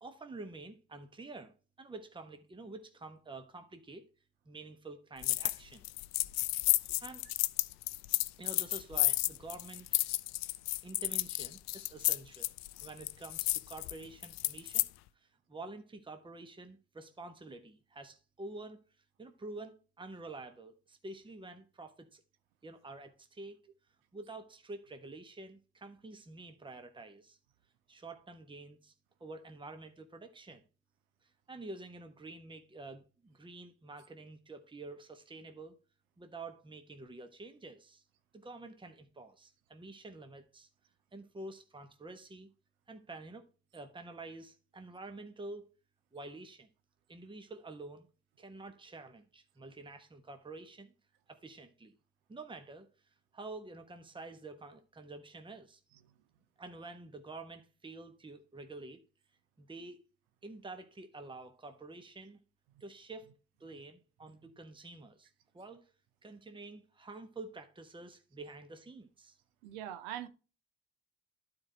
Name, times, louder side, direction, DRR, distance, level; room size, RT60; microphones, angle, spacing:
voice 1, 0.0-4.1 4.5-5.8 6.7-7.3 8.4-10.2 10.8-12.5 12.8-14.8 15.1-18.8 19.2-22.2 22.6-23.6 24.1-27.4 27.9-28.9 29.2-30.6 31.2-35.8 36.2-38.0 38.3-40.7 41.1-42.5 42.9-45.7 46.1-46.7 47.1-48.1 48.4-50.9 51.3-51.9 52.3-52.9 53.3-55.8 56.6-59.0 59.6-60.0 60.4-62.4 62.8-63.3 63.6-65.3 65.5-65.9 66.2-69.4, right 2 dB, 15° right, 1.3 m, -48 dB
sound 1, 5.2-5.6 5.8-14.9, left 20 dB, 60° left, 0.5 m, -32 dB
voice 2, 69.6-70.3, right 11 dB, 75° right, 0.8 m, -42 dB
12.0 x 4.8 x 3.0 m
hypercardioid pair, 60°, 30 cm